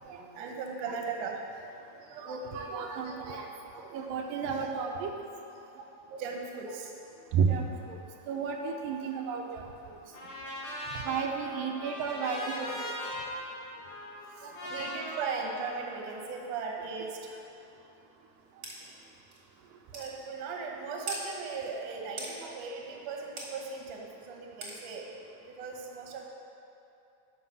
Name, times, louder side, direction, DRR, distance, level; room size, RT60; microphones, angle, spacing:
voice 1, 0.2-1.4 1.7-1.9 4.0-4.1 6.2-7.4 10.4-10.7 14.3-17.4 18.8-19.0 19.9-25.1 25.4-26.3, right 5 dB, 65° right, 0 dB, 1.9 m, -38 dB
voice 2, 2.1-3.5 3.8-5.1 6.1-6.2 7.3-8.0 8.3-9.6 11.1-12.9 14.4-14.9, right 6 dB, 85° right, 2 dB, 2.3 m, -33 dB
Trumpet, 10.1-16.4, left 1 dB, 90° left, 3.9 m, -40 dB
sound 1, 18.6-18.8 19.3-19.4 19.9-20.1 21.1-21.2 22.2-22.3 23.4-23.5 24.6-24.8, right 3 dB, 45° right, 1.5 m, -38 dB
9.4 x 6.3 x 6.2 m, 2.9 s
omnidirectional pair, 4.1 m